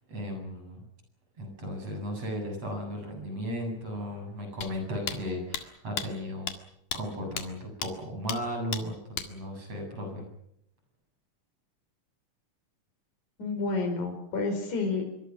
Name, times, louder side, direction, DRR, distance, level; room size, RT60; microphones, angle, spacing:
voice 1, 0.1-0.8 1.4-6.5 6.9-10.3, equal, 45° right, 4 dB, 9.0 m, -35 dB
sound 1, 4.6-4.7 5.1-5.2 5.5-5.6 6.0-6.1 6.5-6.6 6.9-7.0 7.4-7.5 7.8-7.9 8.3-8.4 8.7-8.8 9.2-9.3, left 8 dB, 80° left, 3.6 m, -33 dB
voice 2, 13.4-15.0, left 3 dB, 60° left, 3 dB, 6.4 m, -29 dB
25.0 x 24.0 x 6.1 m, 0.74 s
omnidirectional pair, 3.9 m